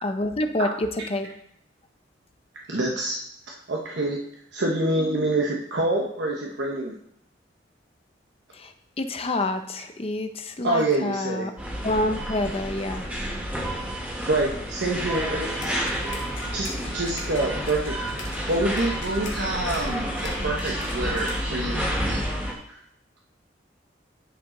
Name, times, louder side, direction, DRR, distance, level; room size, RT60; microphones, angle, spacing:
voice 1, 0.0-1.3 8.5-11.5 11.8-13.1, left 2 dB, 35° left, 7 dB, 0.7 m, -28 dB
voice 2, 2.7-3.2 3.7-4.2 4.5-6.9 10.6-11.5 13.9-14.0 14.3-15.8 16.5-22.3 22.7-22.8, right 2 dB, 65° right, -1 dB, 1.0 m, -27 dB
sound 1, 11.6-22.5, equal, 10° right, 1.5 m, -30 dB
sound 2, 15.5-21.5, left 1 dB, 85° left, 1.4 m, -40 dB
10.0 x 5.0 x 3.8 m, 0.75 s
head